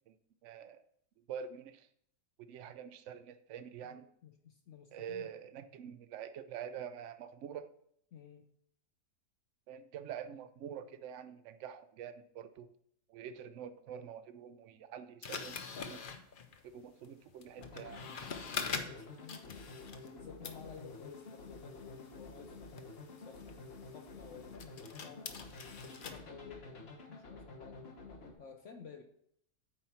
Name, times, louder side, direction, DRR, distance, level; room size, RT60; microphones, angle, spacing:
voice 1, 0.4-0.8 1.3-1.9 2.5-4.0 4.9-7.7 9.7-12.7 13.1-16.0 16.6-18.0, right 8 dB, 80° right, 10 dB, 0.6 m, -46 dB
voice 2, 3.8-5.3 8.1-8.4 18.7-19.6 20.0-23.7 23.9-25.5 25.8-28.0 28.4-29.0, left 6 dB, 60° left, 5 dB, 0.8 m, -53 dB
sound 1, 15.2-20.2 20.4-26.2, left 5 dB, 85° left, 0.4 m, -45 dB
sound 2, 17.6-28.3, left 3 dB, 40° left, 1.4 m, -50 dB
8.7 x 4.5 x 5.7 m, 0.70 s
omnidirectional pair, 1.9 m